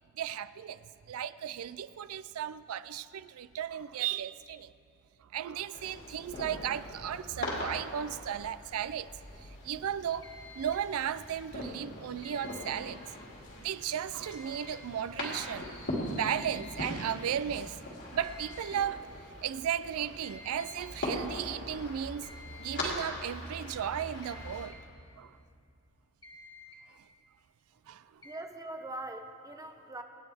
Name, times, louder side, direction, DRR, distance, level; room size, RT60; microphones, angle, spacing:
voice 1, 0.1-0.8 1.1-4.7 5.2-9.1 9.6-10.3 10.6-13.0 13.6-15.7 16.1-17.8 18.1-19.1 19.4-22.3 22.6-24.8 25.2-25.4 27.9-28.2, right 9 dB, 80° right, 0.4 m, -35 dB
sound 1, 5.7-24.7, left 1 dB, 60° left, 2.4 m, -41 dB
sound 2, 10.2-10.9 12.2-12.9 14.2-14.9 16.2-16.9 18.2-18.9 20.2-20.9 22.2-22.9 24.2-24.8 25.9-26.0 26.2-26.8 28.2-28.4, left 3 dB, 20° left, 1.6 m, -51 dB
voice 2, 28.2-30.0, right 2 dB, 15° right, 0.8 m, -42 dB
26.0 x 9.0 x 3.5 m
head